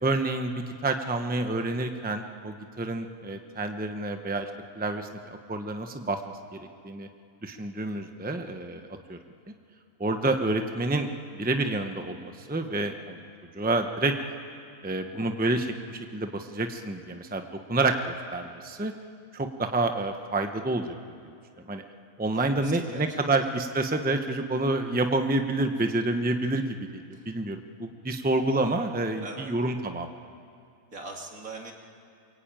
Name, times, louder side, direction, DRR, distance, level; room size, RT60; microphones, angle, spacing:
voice 1, 0.0-4.5 4.8-5.1 5.5-6.2 6.5-6.6 6.8-7.1 7.4-8.8 9.1-9.2 10.0-11.1 11.3-13.2 13.5-14.2 14.8-18.9 19.3-20.9 21.7-21.8 22.2-30.1, right 2 dB, 5° right, 6 dB, 0.9 m, -28 dB
voice 2, 22.3-23.2 27.1-27.3 29.2-29.5 30.9-31.7, right 3 dB, 65° right, 0 dB, 3.2 m, -42 dB
27.0 x 23.5 x 9.0 m, 2.4 s
omnidirectional pair, 1.5 m